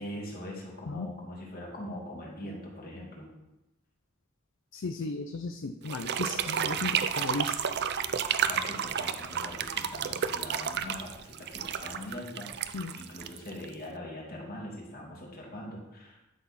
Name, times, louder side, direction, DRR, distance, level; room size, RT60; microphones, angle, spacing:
voice 1, 0.0-3.3 8.5-16.2, left 1 dB, 50° left, -2 dB, 2.6 m, -42 dB
voice 2, 4.7-7.6 12.7-12.9, left 3 dB, 65° left, 8 dB, 0.5 m, -35 dB
sound 1, 5.9-13.9, right 8 dB, 55° right, 0.5 m, -31 dB
12.0 x 6.2 x 4.2 m, 0.96 s
head